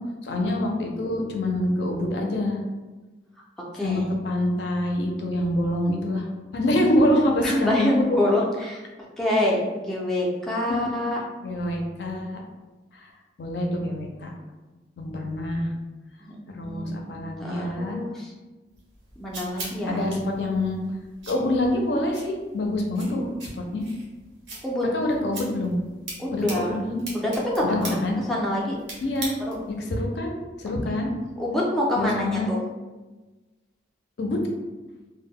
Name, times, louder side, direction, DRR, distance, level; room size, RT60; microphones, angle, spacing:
voice 1, 0.2-2.6 3.8-6.3 6.5-8.2 10.7-11.0 11.4-12.4 12.9-13.1 13.4-14.3 15.0-15.7 16.5-18.0 19.9-20.8 21.3-23.3 23.6-23.9 24.9-25.8 26.3-27.0 27.6-28.2 29.0-29.3 29.8-31.1 32.0-32.5 34.2-34.4, left 1 dB, 65° left, 2 dB, 0.4 m, -26 dB
voice 2, 7.2-8.8 9.2-11.2 16.2-16.4 16.7-18.3 19.2-20.0 24.6-24.8 26.2-26.8 27.1-28.8 29.5-29.6 31.4-32.6, left 1 dB, ahead, -5 dB, 0.4 m, -26 dB
sound 1, 18.7-29.8, right 2 dB, 85° right, 0.8 m, -41 dB
2.1 x 2.0 x 3.5 m, 1.2 s
head